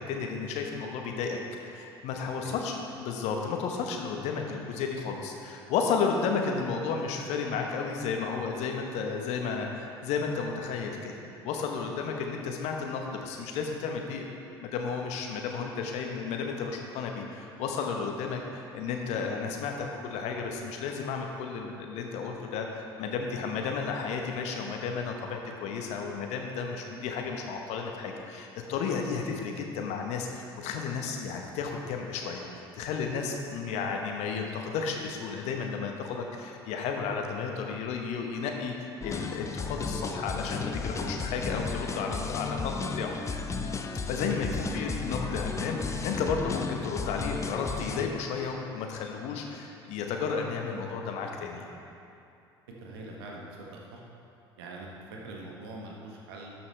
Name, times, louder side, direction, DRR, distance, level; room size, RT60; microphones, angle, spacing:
voice 1, 0.0-1.4 1.6-11.1 11.4-14.2 14.6-32.5 32.8-38.7 39.0-43.2 44.1-51.6, left 5 dB, 60° left, 2 dB, 1.0 m, -33 dB
sound 1, 39.0-48.1, left 4 dB, 25° left, 0.6 m, -34 dB
voice 2, 52.8-54.0 54.6-56.5, right 2 dB, 70° right, -2 dB, 1.3 m, -43 dB
12.5 x 5.8 x 3.3 m, 2.7 s
figure-of-eight pair, 60°, 13 cm